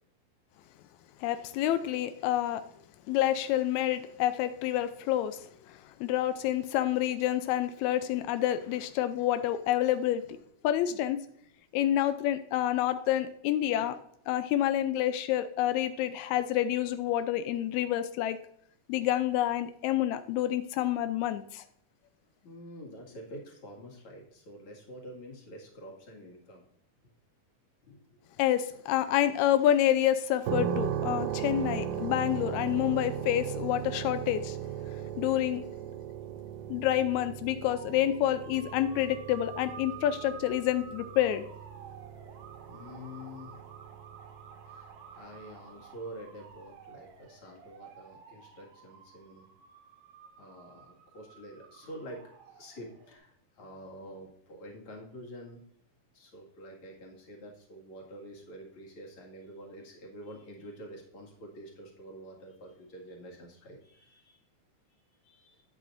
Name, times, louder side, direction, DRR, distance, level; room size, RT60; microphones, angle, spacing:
voice 1, 1.2-2.6 3.1-5.4 5.7-10.2 10.6-11.2 11.7-14.0 14.3-18.4 18.9-21.6 28.4-34.6 35.2-35.6 36.7-41.5, left 12 dB, 90° left, 11 dB, 1.6 m, -28 dB
voice 2, 22.4-26.7 27.8-28.2 36.3-36.7 42.1-43.5 44.7-49.5 50.4-55.6 56.1-64.4 65.2-65.6, equal, 45° left, -1 dB, 2.5 m, -47 dB
sound 1, 30.5-45.1, right 10 dB, 80° right, 2.0 m, -38 dB
sound 2, 37.7-53.2, right 7 dB, 65° right, 1.5 m, -51 dB
9.1 x 8.4 x 2.5 m, 0.68 s
omnidirectional pair, 3.8 m